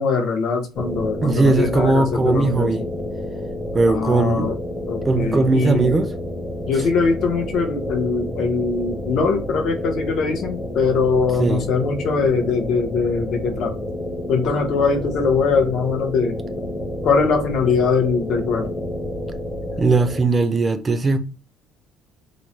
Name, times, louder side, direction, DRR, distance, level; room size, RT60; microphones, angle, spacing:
voice 1, 0.0-2.7 3.9-4.5 4.9-5.9 6.7-13.7 14.3-16.4 17.0-18.7, left 5 dB, 50° left, 0.7 m, -21 dB
sound 1, 0.7-20.2, left 1 dB, 10° left, 0.7 m, -30 dB
voice 2, 1.2-2.8 3.7-4.5 5.1-6.1 6.8-6.9 11.4-11.7 19.8-21.2, right 3 dB, 20° right, 0.3 m, -19 dB
3.0 x 2.1 x 3.8 m
cardioid pair, 175°, 0 cm